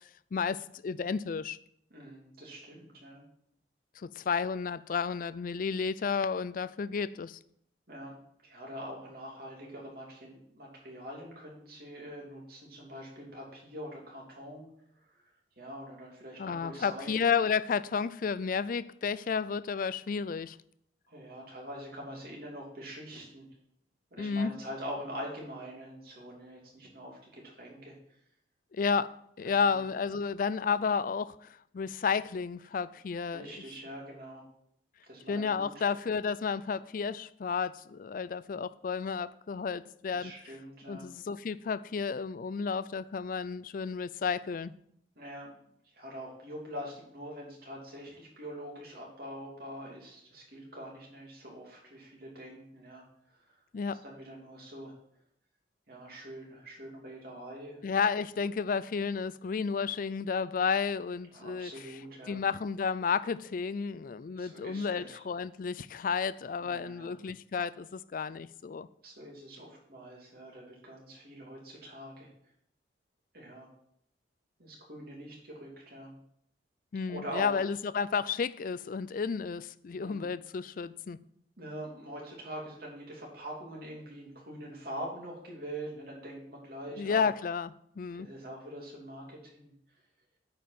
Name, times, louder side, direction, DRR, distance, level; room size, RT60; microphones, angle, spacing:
voice 1, 0.3-1.6 4.0-7.4 16.4-20.6 24.2-24.6 28.7-29.1 29.4-33.7 35.3-40.6 40.9-44.7 53.7-54.0 57.8-68.9 76.9-81.2 86.9-88.3, left 5 dB, 50° left, 0.4 m, -32 dB
voice 2, 1.9-3.2 7.9-8.2 8.4-14.7 15.6-17.1 21.1-23.5 24.1-27.9 29.4-29.8 33.3-34.4 35.1-35.8 40.1-41.1 45.2-45.6 45.9-53.0 54.0-54.9 55.9-57.8 61.3-62.4 64.4-65.2 66.6-67.2 69.0-72.3 73.3-73.7 74.6-76.1 77.0-77.7 80.0-80.3 81.6-87.2 88.1-89.7, equal, 55° right, 2.9 m, -44 dB
8.7 x 5.3 x 6.0 m
head